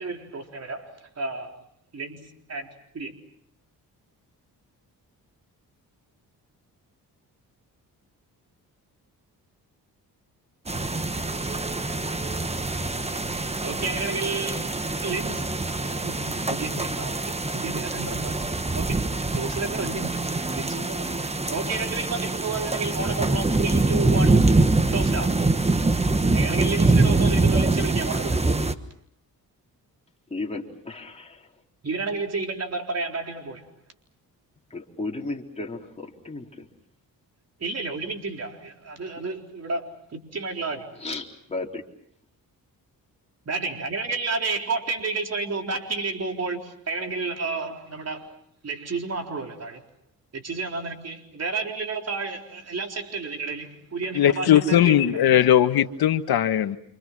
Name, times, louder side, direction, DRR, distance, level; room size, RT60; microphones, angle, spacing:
voice 1, 0.0-1.5 1.9-3.2 13.6-15.6 16.0-17.2 17.5-18.4 18.7-21.2 21.5-24.7 24.9-25.4 26.3-28.6 31.8-33.7 37.6-41.0 43.5-48.3 48.6-49.8 50.3-55.2, right 3 dB, 45° right, 4.2 m, -31 dB
sound 1, 10.7-28.7, right 2 dB, 15° right, 1.4 m, -24 dB
voice 2, 30.3-31.5 34.7-36.7 40.9-41.8, left 3 dB, 15° left, 4.0 m, -34 dB
voice 3, 54.1-56.8, left 10 dB, 85° left, 1.5 m, -19 dB
29.5 x 27.0 x 6.1 m
cardioid pair, 95°, 36 cm